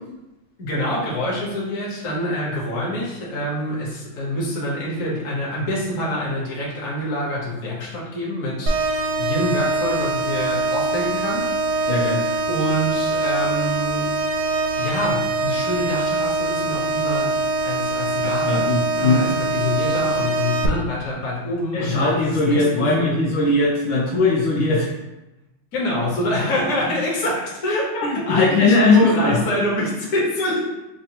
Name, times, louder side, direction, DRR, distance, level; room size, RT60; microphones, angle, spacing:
voice 1, 0.6-12.1 12.5-14.1 14.8-17.3 17.6-18.6 19.0-23.2 25.7-30.6, left 1 dB, 50° left, -5 dB, 1.2 m, -26 dB
sound 1, 8.7-20.7, right 3 dB, 75° right, 1.0 m, -23 dB
voice 2, 11.9-12.2 18.4-19.2 21.7-24.9 26.8-26.9 28.0-29.4, left 3 dB, 75° left, -4 dB, 1.4 m, -19 dB
5.2 x 2.2 x 2.8 m, 0.99 s
omnidirectional pair, 2.3 m